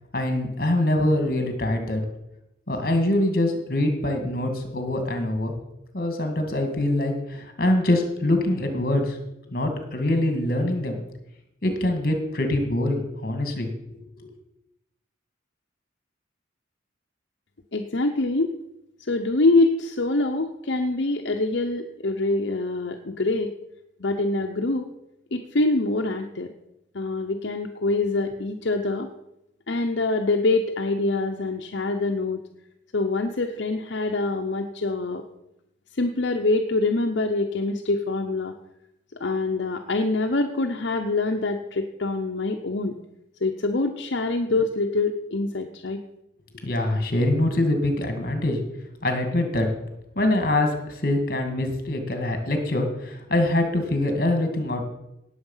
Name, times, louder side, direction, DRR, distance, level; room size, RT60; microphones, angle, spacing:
voice 1, 0.1-2.0 2.7-5.5 5.9-9.2 9.5-11.0 11.6-13.7 14.2-14.3 46.5-48.6 49.0-49.7 50.2-54.8, left 1 dB, 50° left, 5 dB, 2.2 m, -24 dB
voice 2, 17.7-18.5 19.0-23.5 24.0-24.9 25.3-26.5 26.9-29.1 29.7-32.4 32.9-35.2 36.0-38.5 39.2-42.9 43.4-46.0, left 2 dB, 70° left, 4 dB, 0.8 m, -25 dB
18.0 x 7.3 x 5.6 m, 0.87 s
head